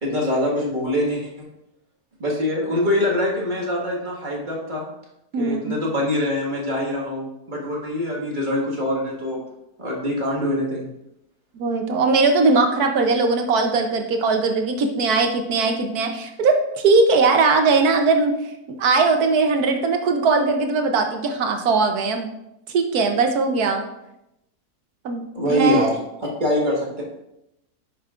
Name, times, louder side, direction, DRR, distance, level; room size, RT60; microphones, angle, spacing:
voice 1, 0.0-1.5 2.2-4.9 5.4-9.4 9.8-10.9 25.3-27.0, left 1 dB, 30° right, -3 dB, 1.7 m, -24 dB
voice 2, 5.3-5.7 11.5-18.4 18.7-22.3 22.7-23.8 25.0-25.2 25.5-25.8, right 4 dB, 75° right, 5 dB, 1.3 m, -20 dB
9.8 x 5.9 x 2.4 m, 0.86 s
omnidirectional pair, 1.6 m